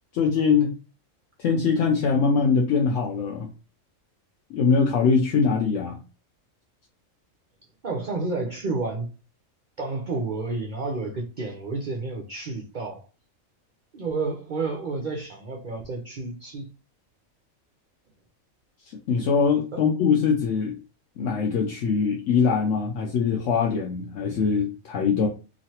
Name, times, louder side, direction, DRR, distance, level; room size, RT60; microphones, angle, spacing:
voice 1, 0.1-0.7 1.4-3.5 4.5-6.0 19.1-20.8 21.2-25.3, left 5 dB, 70° left, 0.9 m, -22 dB
voice 2, 7.8-9.1 9.8-13.0 13.9-16.7 19.7-19.8, right 3 dB, 65° right, 0.4 m, -30 dB
3.1 x 2.4 x 2.8 m
omnidirectional pair, 1.4 m